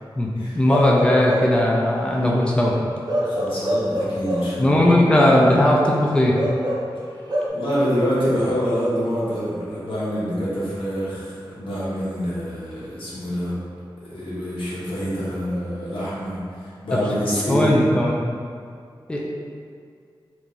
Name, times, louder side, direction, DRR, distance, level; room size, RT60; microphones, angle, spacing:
voice 1, 0.2-2.7 4.6-6.3 17.5-18.2 19.1-19.2, left 1 dB, 10° left, -3 dB, 0.4 m, -18 dB
Bark / Livestock farm animals working animals, 0.7-1.7 3.1-4.6 6.3-7.5, equal, 50° right, 0.6 m, -25 dB
voice 2, 3.2-5.0 7.5-13.6 14.0-17.7, equal, 90° left, -9 dB, 1.0 m, -26 dB
2.9 x 2.5 x 3.7 m, 2.2 s
wide cardioid pair, 85°, 9 cm